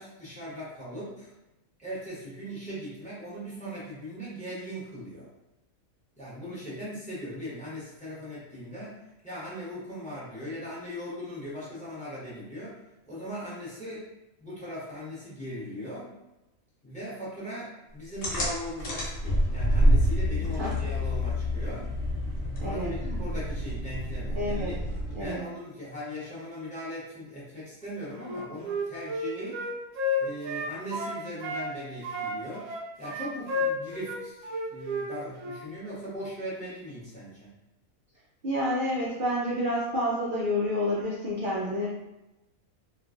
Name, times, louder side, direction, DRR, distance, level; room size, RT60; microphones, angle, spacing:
voice 1, 0.0-1.3 1.8-5.3 6.2-9.0 9.2-12.8 13.0-14.1 14.4-16.1 16.8-21.9 22.6-24.8 25.1-29.6 30.2-32.7 33.0-37.5, equal, 5° left, -9 dB, 0.9 m, -39 dB
sound 1, 18.2-25.4, equal, 65° left, 1.2 m, -27 dB
voice 2, 22.6-22.9 24.3-24.7 25.1-25.4 38.4-41.9, left 1 dB, 55° right, -6 dB, 0.6 m, -29 dB
Wind instrument woodwind instrument, 28.2-31.7 32.0-35.1 35.4-35.6, left 2 dB, 75° right, 0.9 m, -31 dB
3.2 x 2.4 x 2.4 m, 0.97 s
omnidirectional pair, 1.4 m